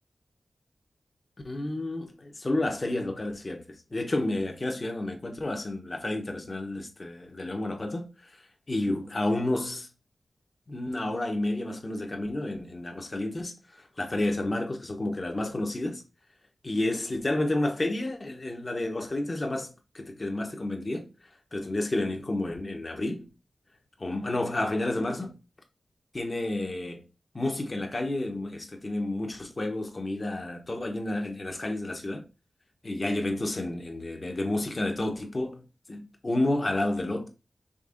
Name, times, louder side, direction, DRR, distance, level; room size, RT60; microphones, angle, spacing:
voice 1, 1.4-3.6 3.9-8.4 8.7-9.9 10.7-13.6 14.0-16.0 16.6-21.1 21.5-23.3 24.0-25.4 26.1-27.0 27.3-32.3 32.8-35.6 35.9-37.3, left 1 dB, 40° left, 1.0 m, -30 dB
5.3 x 3.5 x 2.5 m
wide cardioid pair, 70°, 0 cm